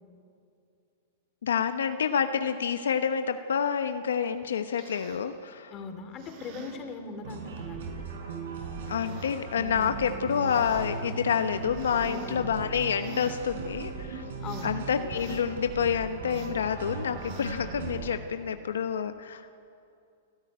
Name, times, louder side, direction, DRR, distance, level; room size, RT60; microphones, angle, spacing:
voice 1, 1.4-5.7 8.9-14.2 14.6-19.5, left 7 dB, 85° left, 8 dB, 1.1 m, -28 dB
sound 1, 4.4-5.3 6.0-6.8 7.7-7.9 8.6-9.4 10.1-10.9 11.4-12.3 12.9-13.4 13.9-14.7 15.1-15.5 16.2-16.6 17.1-17.6 18.1-18.4, right 4 dB, 50° right, 5.7 m, -49 dB
voice 2, 5.7-8.1 12.0-12.5 14.4-14.7, left 4 dB, 30° left, 7 dB, 3.2 m, -40 dB
sound 2, 7.2-18.1, right 5 dB, 70° right, 5.0 m, -38 dB
28.5 x 13.5 x 9.5 m, 2.5 s
hypercardioid pair, 130°, 0 cm